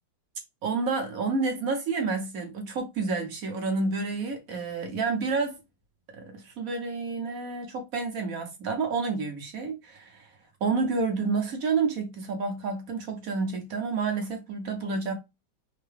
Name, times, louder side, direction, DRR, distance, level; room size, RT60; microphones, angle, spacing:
voice 1, 0.6-5.6 6.1-10.3 10.6-15.1, right 4 dB, 55° right, 1.1 m, -29 dB
4.5 x 2.2 x 3.3 m
omnidirectional pair, 2.1 m